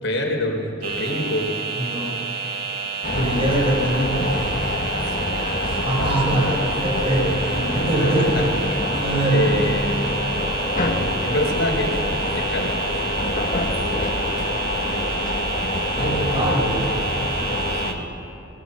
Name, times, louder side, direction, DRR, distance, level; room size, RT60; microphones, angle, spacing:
voice 1, 0.0-1.5 4.9-5.3 7.6-8.5 9.2-10.2 11.2-12.0 12.3-12.8 17.7-18.0, left 1 dB, 75° left, 1 dB, 4.6 m, -26 dB
sound 1, 0.8-17.9, right 5 dB, 50° right, 2.3 m, -29 dB
voice 2, 1.8-2.1 3.1-4.3 5.6-8.4 9.0-9.5 15.9-16.9, right 1 dB, 30° right, -1 dB, 5.5 m, -23 dB
sound 2, 3.0-17.9, left 2 dB, 45° left, 2.0 m, -26 dB
27.5 x 21.5 x 6.6 m, 2.9 s
head